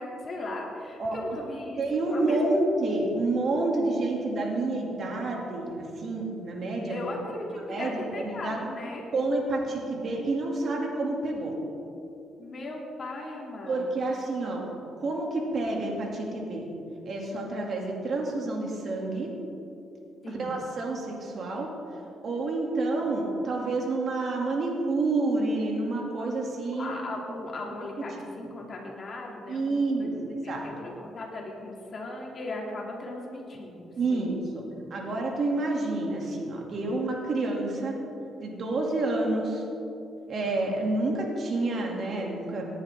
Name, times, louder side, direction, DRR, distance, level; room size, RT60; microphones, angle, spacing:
voice 1, 0.0-2.4 6.9-9.0 12.4-14.1 20.2-20.6 23.0-23.1 26.8-34.3, left 2 dB, 45° left, -2 dB, 3.0 m, -38 dB
voice 2, 1.8-7.1 7.7-8.6 9.1-11.5 13.7-14.6 15.0-16.7 17.0-19.3 20.3-21.7 22.2-27.2 29.5-30.6 34.0-34.6 34.9-37.9 38.4-39.6 40.3-42.6, right 2 dB, 55° right, -1 dB, 2.8 m, -29 dB
18.5 x 10.5 x 3.8 m, 2.7 s
cardioid pair, 90°, 0 cm